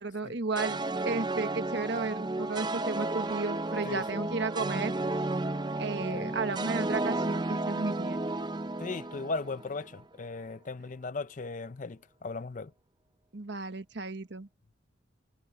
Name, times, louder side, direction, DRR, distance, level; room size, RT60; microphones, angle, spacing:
voice 1, 0.0-0.8 1.0-4.9 5.8-8.2 13.3-14.5, right 3 dB, 55° right, 1.3 m, -33 dB
sound 1, 0.6-9.9, right 2 dB, 20° right, 0.6 m, -33 dB
voice 2, 8.8-12.7, left 3 dB, 40° left, 0.5 m, -37 dB
head